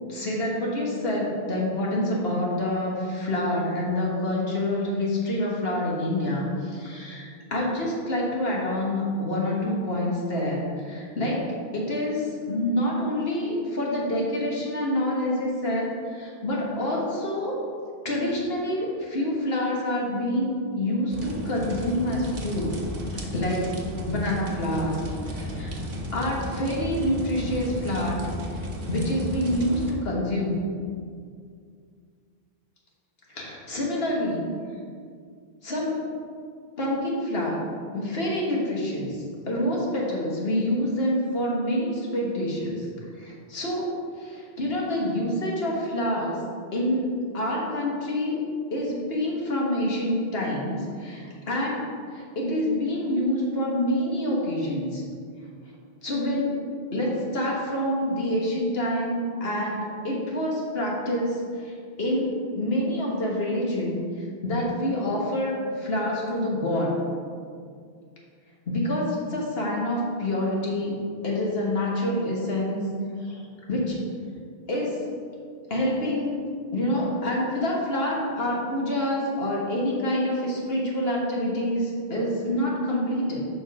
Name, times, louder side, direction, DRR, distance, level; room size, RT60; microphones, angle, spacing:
voice 1, 0.1-17.5 18.1-22.7 23.1-23.8 24.1-25.0 25.3-25.7 26.1-28.2 28.5-30.5 33.3-34.5 35.6-36.0 36.8-37.6 37.9-42.9 43.2-46.4 46.7-48.4 48.7-51.8 52.1-55.0 56.0-56.6 56.9-66.9 68.7-71.0 71.2-72.8 73.2-73.4 73.7-74.0 74.7-75.0 75.7-76.4 76.7-83.4, left 1 dB, 70° left, -3 dB, 1.7 m, -27 dB
sound 1, 21.1-29.9, equal, 60° right, 1.2 m, -34 dB
7.2 x 5.3 x 4.8 m, 2.2 s
omnidirectional pair, 1.1 m